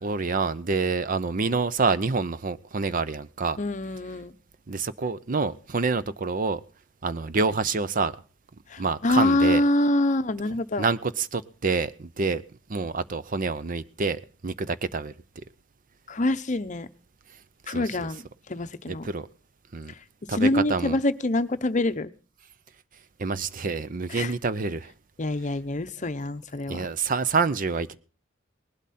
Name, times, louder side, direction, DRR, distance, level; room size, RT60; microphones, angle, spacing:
voice 1, 0.0-3.6 4.7-6.6 7.0-8.1 8.8-9.6 10.8-12.4 12.7-15.1 17.7-18.1 18.9-19.3 19.7-19.9 20.3-21.0 23.2-24.9 26.7-27.9, right 4 dB, 45° right, 0.6 m, -27 dB
voice 2, 3.6-4.3 8.7-10.8 16.1-16.9 17.7-18.2 18.5-19.1 20.4-22.1 24.1-24.3 25.2-26.8, left 1 dB, 40° left, 0.7 m, -25 dB
19.5 x 12.0 x 4.2 m
head